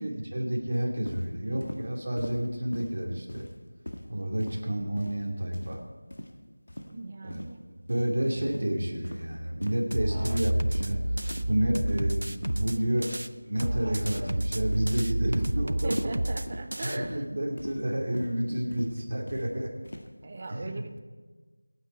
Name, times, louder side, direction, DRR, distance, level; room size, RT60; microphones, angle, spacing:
voice 1, 0.0-3.5 4.1-5.8 7.2-7.4 7.9-13.1 13.5-16.2 16.8-19.7 20.5-20.8, right 1 dB, 45° right, -1 dB, 2.7 m, -30 dB
sound 1, 1.1-1.3 1.6-1.8 2.2-2.4 2.7-3.0 3.3-3.6 3.9-4.1 4.4-4.6 5.0-5.2 5.5-5.8 6.1-6.3 6.7-6.9 7.3-7.5 7.9-8.1 8.5-8.7 9.0-9.2 9.6-9.8 10.2-10.4 10.7-11.0 11.3-11.5 11.9-12.1 12.4-12.6 13.0-13.1 13.6-13.8 14.2-14.5 14.7-15.0 15.3-15.5 15.9-16.2 16.5-16.7 17.0-17.2 17.6-17.8 18.1-18.3 18.7-18.9 19.3-19.5 19.8-20.1, left 1 dB, 60° left, 1.7 m, -40 dB
voice 2, 6.9-7.6 15.8-17.2 20.2-21.0, right 2 dB, 20° right, 8 dB, 0.7 m, -39 dB
sound 2, 9.9-13.3 13.6-17.0, right 1 dB, 90° right, 0.8 m, -30 dB
26.5 x 9.1 x 4.6 m, 1.4 s
figure-of-eight pair, 180°, 0 cm